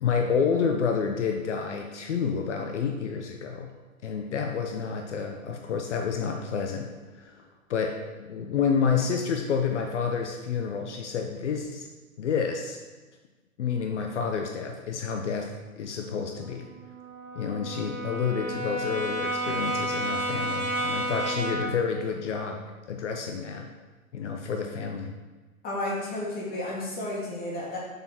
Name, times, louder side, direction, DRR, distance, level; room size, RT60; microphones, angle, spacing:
voice 1, 0.0-3.7 4.0-7.4 7.7-11.9 12.2-12.8 13.6-15.5 15.8-16.7 17.4-22.6 22.9-23.7 24.1-25.1, left 6 dB, 55° left, 4 dB, 0.8 m, -29 dB
Brass instrument, 16.3-21.8, right 1 dB, 80° right, 2.0 m, -31 dB
voice 2, 25.6-27.8, left 1 dB, 20° left, -4 dB, 2.2 m, -32 dB
6.7 x 6.2 x 4.4 m, 1.3 s
hypercardioid pair, 125°, 43 cm